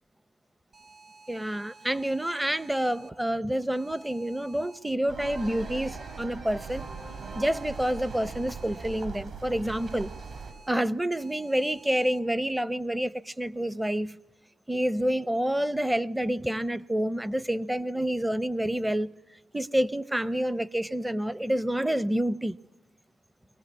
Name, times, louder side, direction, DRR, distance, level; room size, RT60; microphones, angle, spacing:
sound 1, 0.7-3.1 3.7-4.8 5.2-6.3 6.7-9.0 9.7-10.7 11.2-12.2, right 3 dB, 35° right, 3.1 m, -53 dB
voice 1, 1.3-6.9 7.3-10.1 10.7-14.2 14.7-19.2 19.5-22.6, right 1 dB, 10° right, 0.8 m, -28 dB
sound 2, 5.1-10.5, right 4 dB, 50° right, 5.2 m, -40 dB
23.0 x 18.5 x 9.5 m
cardioid pair, 90°, 0 cm